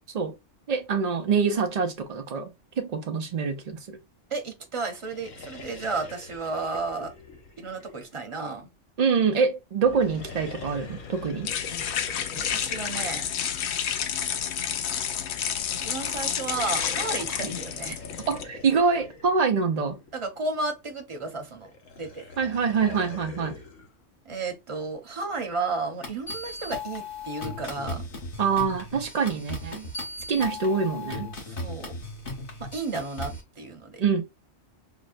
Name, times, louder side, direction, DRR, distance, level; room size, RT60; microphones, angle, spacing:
voice 1, 0.7-2.5 2.8-4.0 9.0-11.5 18.3-20.0 22.4-23.6 28.4-29.9 30.3-31.3 34.0-34.2, right 5 dB, 75° right, 0.3 m, -25 dB
voice 2, 4.3-7.1 7.6-8.7 11.7-11.9 12.3-13.3 15.8-18.0 20.1-21.7 22.0-22.2 24.2-28.0 31.4-31.9 32.6-34.0, right 3 dB, 30° right, 0.7 m, -33 dB
sound 1, 4.9-8.5 9.8-14.2 16.3-20.3 21.6-23.9, left 2 dB, 85° left, 1.2 m, -45 dB
sound 2, 9.8-18.4, left 8 dB, 70° left, 0.8 m, -31 dB
sound 3, 26.0-33.4, left 2 dB, 45° left, 1.1 m, -37 dB
5.9 x 2.1 x 2.4 m
omnidirectional pair, 1.3 m